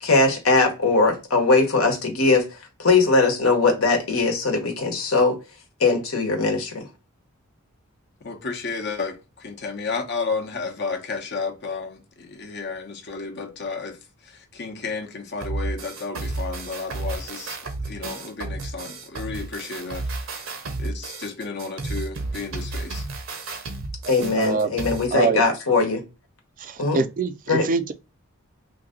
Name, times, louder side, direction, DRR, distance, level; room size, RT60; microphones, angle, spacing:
voice 1, 0.0-2.4 2.8-5.4 5.8-6.8 24.1-26.0 26.8-27.0 27.5-27.7, left 3 dB, 80° left, 1.1 m, -20 dB
voice 2, 8.2-14.0 14.2-20.4 20.8-23.1, left 4 dB, 55° left, 0.8 m, -32 dB
sound 1, 15.4-25.1, right 2 dB, 70° right, 0.8 m, -32 dB
voice 3, 24.0-24.7 25.1-25.4 26.6-27.9, right 4 dB, 40° right, 0.4 m, -25 dB
2.8 x 2.7 x 3.7 m
head